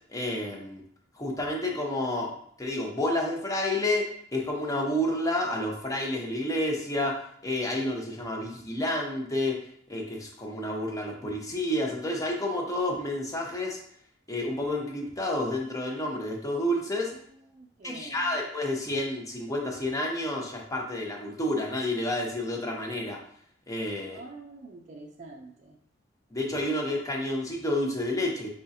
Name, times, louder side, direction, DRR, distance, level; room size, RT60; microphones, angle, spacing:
voice 1, 0.1-0.8 1.1-2.3 2.6-4.0 4.3-9.6 9.9-13.8 14.3-17.1 17.8-23.2 23.7-24.2 26.3-28.5, left 1 dB, 20° left, 0 dB, 0.8 m, -30 dB
voice 2, 17.3-18.4 24.1-25.8, right 3 dB, 40° right, 0 dB, 0.5 m, -47 dB
4.8 x 3.8 x 2.7 m, 0.64 s
head